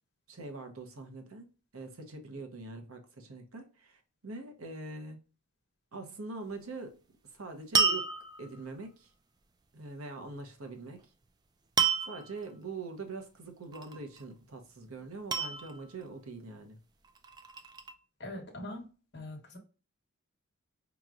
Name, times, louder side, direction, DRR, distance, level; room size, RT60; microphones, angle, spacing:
voice 1, 0.3-5.2 5.9-7.0 7.3-9.1 9.7-11.1 12.0-16.8, right 3 dB, 80° right, 0.9 m, -43 dB
sound 1, 7.7-8.6 11.8-12.4 13.7-14.2 15.3-16.1 17.0-17.9, right 5 dB, 20° right, 0.3 m, -30 dB
voice 2, 18.2-18.9 19.1-19.6, left 1 dB, 55° left, 1.0 m, -42 dB
4.9 x 3.0 x 2.4 m
head